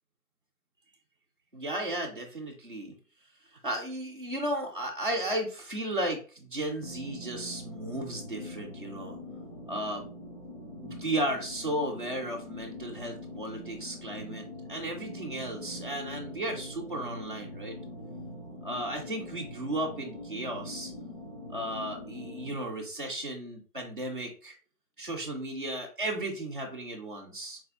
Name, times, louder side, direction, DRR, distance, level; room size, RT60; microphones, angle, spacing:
voice 1, 1.5-2.9 3.6-9.2 9.7-10.1 10.8-17.8 18.6-20.9 21.5-24.5 25.0-27.6, right 1 dB, 35° right, -1 dB, 0.6 m, -34 dB
sound 1, 6.8-22.6, left 1 dB, 45° left, 0.6 m, -43 dB
4.0 x 2.3 x 2.8 m, 0.37 s
figure-of-eight pair, 175°, 45 cm